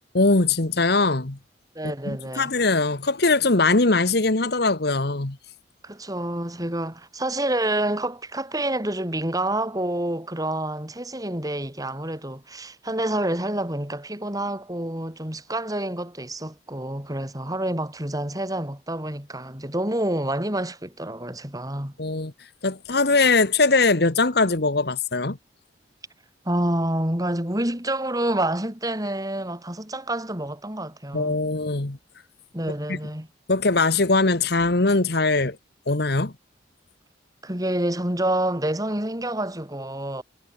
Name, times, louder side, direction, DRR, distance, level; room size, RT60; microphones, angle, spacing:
voice 1, 0.1-1.4 2.0-5.4 22.0-22.3 22.6-25.4 31.1-32.0 32.9-33.0 33.5-35.6 35.9-36.3, left 3 dB, 60° left, 1.5 m, -21 dB
voice 2, 1.7-2.5 5.8-21.9 26.4-31.4 32.5-33.3 37.4-40.2, right 1 dB, 20° right, 4.6 m, -28 dB
head